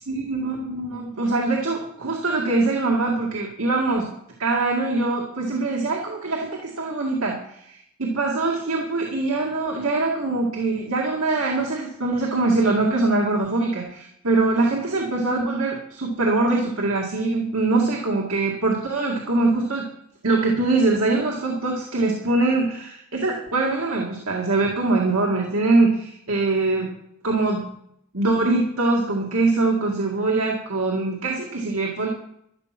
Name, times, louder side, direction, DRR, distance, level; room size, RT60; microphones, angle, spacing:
voice 1, 0.1-4.1 4.4-19.9 20.2-26.9 27.2-27.7 28.1-32.1, right 3 dB, 75° right, -1 dB, 2.1 m, -23 dB
12.0 x 11.5 x 6.0 m, 0.74 s
head